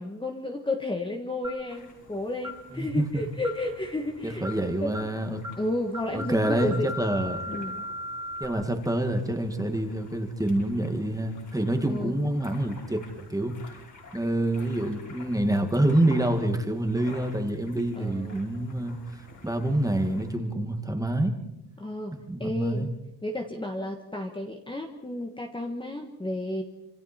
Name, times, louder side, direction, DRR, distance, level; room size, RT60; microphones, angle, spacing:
voice 1, 0.0-5.0 5.6-6.9 7.5-7.8 11.8-12.2 18.0-18.4 21.8-22.9 23.2-26.6, left 1 dB, 10° left, 2 dB, 1.5 m, -32 dB
sound 1, 1.4-1.7 2.4-2.7 3.4-3.7 4.4-4.7 4.9-5.2 5.4-5.7 5.9-8.4, left 1 dB, 45° right, 3.1 m, -37 dB
sound 2, 1.7-20.3, left 3 dB, 40° left, 5.0 m, -51 dB
voice 2, 2.7-3.0 4.2-5.4 6.1-7.5 8.4-13.6 14.1-19.0 19.4-21.4 22.1-22.9, right 1 dB, 10° right, 5 dB, 1.9 m, -27 dB
28.5 x 27.0 x 4.4 m, 0.91 s
wide cardioid pair, 165°, 44 cm